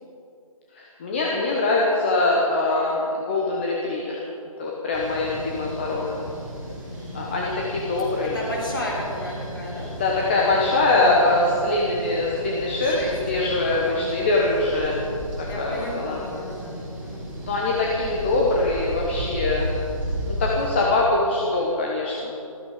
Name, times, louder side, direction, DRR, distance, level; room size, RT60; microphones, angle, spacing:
voice 1, 0.7-4.2 4.6-6.2 7.1-8.4 10.0-15.0 15.4-16.2 17.5-19.8 20.4-22.4, left 2 dB, 20° left, -3 dB, 1.1 m, -23 dB
sound 1, 4.9-20.7, right 1 dB, 5° right, 3.4 m, -34 dB
voice 2, 6.6-7.4 8.3-11.1 12.8-14.0 15.4-17.3, left 1 dB, 40° left, -3 dB, 4.0 m, -35 dB
14.5 x 14.0 x 5.0 m, 2.6 s
figure-of-eight pair, 165°, 18 cm